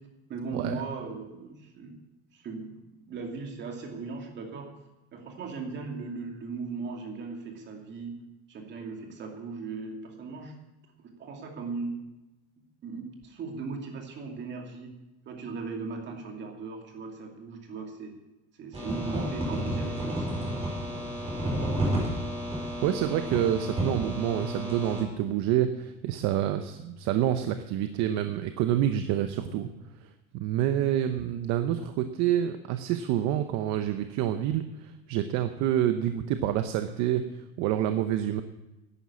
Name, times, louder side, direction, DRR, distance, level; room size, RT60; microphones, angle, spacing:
voice 1, 0.3-2.0 2.3-4.7 5.1-8.2 8.5-10.5 11.0-11.9 12.8-15.0 15.3-18.2 18.6-21.1 21.4-22.1, right 4 dB, 35° right, 2 dB, 2.5 m, -38 dB
sound 1, 18.7-25.0, equal, 15° right, 4.6 m, -31 dB
voice 2, 22.8-29.7 30.0-38.4, right 11 dB, 55° right, 9 dB, 0.8 m, -28 dB
11.5 x 9.8 x 8.4 m, 0.99 s
cardioid pair, 170°, 34 cm